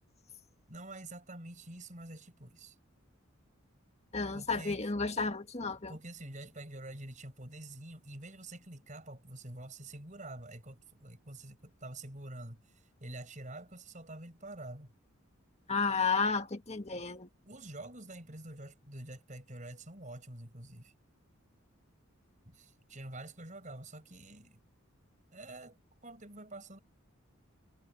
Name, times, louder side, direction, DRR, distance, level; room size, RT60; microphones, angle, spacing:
voice 1, 0.7-2.8 4.3-4.9 5.6-14.9 17.4-20.9 22.4-24.6 25.3-25.8 26.0-26.8, right 2 dB, 35° right, 5.7 m, -47 dB
voice 2, 4.1-5.9 15.7-17.3, left 4 dB, 30° left, 1.8 m, -32 dB
head